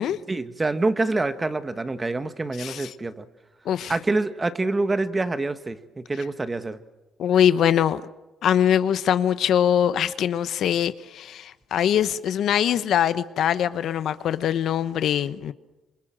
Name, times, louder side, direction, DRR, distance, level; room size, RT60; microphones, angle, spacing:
voice 1, 0.3-3.2 3.9-6.8, right 2 dB, 20° right, 1.7 m, -26 dB
voice 2, 2.6-2.9 3.6-3.9 7.2-8.0 8.4-15.5, left 9 dB, 75° left, 1.0 m, -22 dB
27.5 x 26.5 x 7.7 m
cardioid pair, 90°, 0 cm